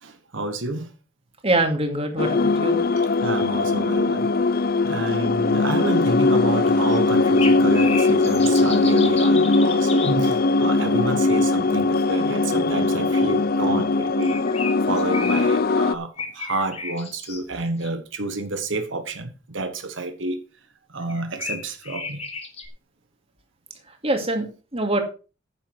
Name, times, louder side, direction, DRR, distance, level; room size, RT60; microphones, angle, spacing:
voice 1, 0.0-0.9 3.2-4.3 4.8-14.4 14.8-20.4 20.9-22.2, right 2 dB, 75° right, 1.4 m, -29 dB
voice 2, 1.4-2.8 24.0-25.0, right 2 dB, 30° right, 2.4 m, -24 dB
sound 1, 2.2-15.9, left 3 dB, 50° left, 0.6 m, -20 dB
sound 2, 7.2-10.1 14.2-15.4 16.2-17.9 21.1-22.7, left 5 dB, 35° left, 2.7 m, -33 dB
9.9 x 7.5 x 6.1 m
head